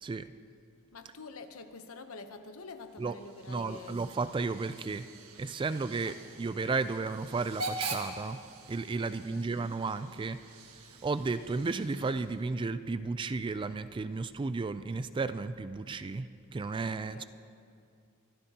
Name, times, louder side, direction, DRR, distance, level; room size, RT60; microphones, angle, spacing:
voice 1, 0.9-4.0 6.0-6.2 9.0-9.6 16.9-17.3, left 4 dB, 70° left, 8 dB, 0.9 m, -47 dB
Hiss / Train / Alarm, 2.9-12.5, right 2 dB, 75° right, 1.5 m, -44 dB
voice 2, 3.5-5.1 5.4-8.4 8.7-10.4 10.7-17.2, right 4 dB, 20° right, 12 dB, 0.3 m, -33 dB
24.5 x 13.5 x 2.9 m, 2.4 s
head